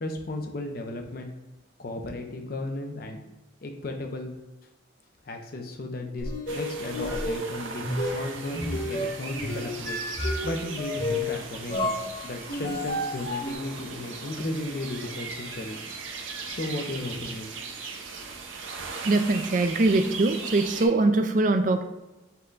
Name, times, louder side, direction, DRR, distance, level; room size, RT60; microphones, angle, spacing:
voice 1, 0.0-1.3 1.8-3.3 3.6-4.3 5.2-10.0 10.4-11.9 12.2-15.8 16.4-17.5, left 2 dB, 50° left, 3 dB, 0.6 m, -35 dB
sound 1, 6.2-13.5, left 1 dB, 65° left, 1.4 m, -31 dB
sound 2, 6.5-20.9, right 4 dB, 85° right, 0.6 m, -38 dB
voice 2, 19.0-21.8, right 2 dB, 45° right, 7 dB, 0.4 m, -22 dB
5.5 x 2.2 x 3.8 m, 1.1 s
head